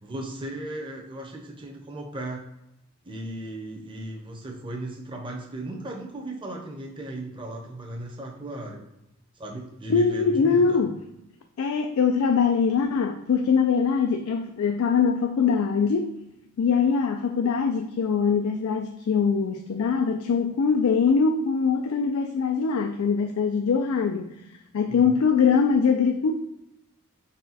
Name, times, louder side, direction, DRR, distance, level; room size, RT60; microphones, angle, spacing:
voice 1, 0.0-2.4 3.0-8.8 9.4-10.8 24.9-25.2, right 1 dB, 25° right, 0 dB, 0.8 m, -36 dB
voice 2, 9.9-11.0 11.6-16.1 16.6-24.4 24.7-26.3, left 5 dB, 80° left, 5 dB, 0.3 m, -22 dB
4.1 x 2.2 x 4.1 m, 0.86 s
head